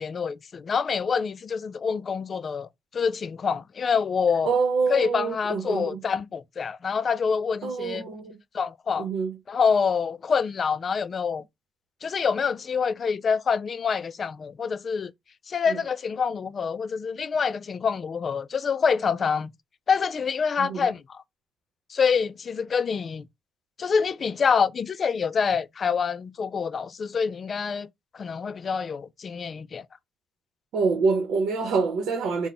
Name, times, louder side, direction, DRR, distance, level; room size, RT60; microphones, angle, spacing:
voice 1, 0.0-2.7 2.9-4.5 4.9-8.1 8.5-9.1 9.5-11.4 12.0-15.1 15.5-19.5 19.9-21.2 21.9-23.2 23.8-27.9 28.1-29.8, left 6 dB, 45° left, 0.3 m, -26 dB
voice 2, 4.4-6.0 7.6-8.4 9.0-9.4 15.7-15.8 20.6-20.9 30.7-32.5, right 4 dB, 80° right, 0.8 m, -26 dB
4.0 x 2.1 x 3.3 m
cardioid pair, 90°, 0 cm